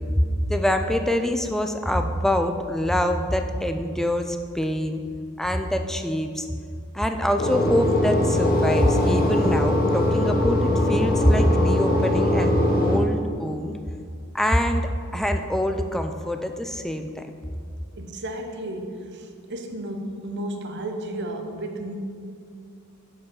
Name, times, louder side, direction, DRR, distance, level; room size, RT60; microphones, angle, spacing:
voice 1, 0.1-5.0 5.4-6.5 6.9-13.7 14.3-17.3, equal, ahead, 6 dB, 0.3 m, -24 dB
sound 1, 7.4-13.0, left 1 dB, 45° left, 0.8 m, -21 dB
voice 2, 18.0-21.9, right 1 dB, 55° right, 5 dB, 0.7 m, -33 dB
7.1 x 5.2 x 5.4 m, 2.3 s
head